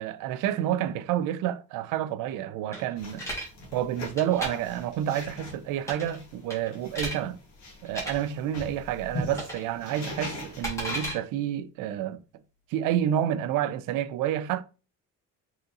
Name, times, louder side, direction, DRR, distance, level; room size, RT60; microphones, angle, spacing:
voice 1, 0.0-3.3 3.7-7.4 7.8-12.2 12.7-14.6, right 11 dB, 85° right, 0.5 m, -29 dB
sound 1, 2.7-3.5 4.0-4.5 5.8-6.2 6.5-7.2 7.9-8.1 9.3-9.7 9.9-11.1, right 1 dB, 10° left, 1.6 m, -34 dB
sound 2, 3.0-11.1, equal, 60° left, 1.6 m, -41 dB
4.3 x 3.6 x 2.7 m
cardioid pair, 175°, 31 cm